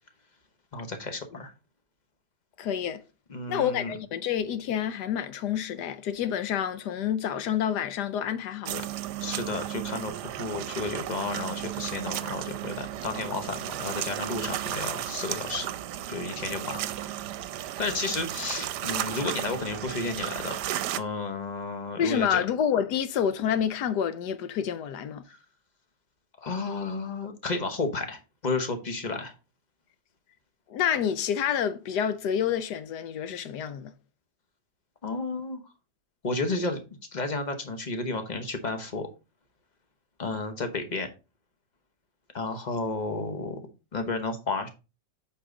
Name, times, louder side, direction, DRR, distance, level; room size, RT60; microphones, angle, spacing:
voice 1, 0.7-1.5 3.3-3.9 9.2-15.7 16.1-16.9 17.8-20.6 21.0-22.4 25.3-25.4 26.4-29.3 35.0-35.6 36.2-36.8 37.1-39.1 40.2-41.1 42.3-43.6 43.9-44.7, left 3 dB, 30° left, 1.0 m, -32 dB
voice 2, 2.6-3.0 3.5-8.9 22.0-25.2 30.7-33.9, left 9 dB, 75° left, 1.3 m, -28 dB
sound 1, 8.6-21.0, right 12 dB, 80° right, 1.2 m, -34 dB
8.5 x 4.9 x 3.9 m
omnidirectional pair, 1.8 m